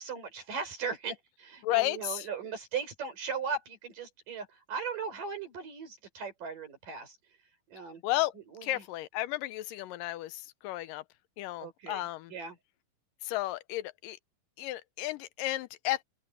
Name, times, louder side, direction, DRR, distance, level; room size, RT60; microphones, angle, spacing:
voice 1, 0.0-7.2 7.7-8.0 8.5-8.8 11.6-12.0 12.3-12.6, right 5 dB, 75° right, 7.2 m, -38 dB
voice 2, 1.6-2.3 8.0-8.3 8.6-11.0 11.4-12.3 13.2-14.2 14.6-16.0, left 16 dB, 80° left, 2.3 m, -33 dB
open air
omnidirectional pair, 3.9 m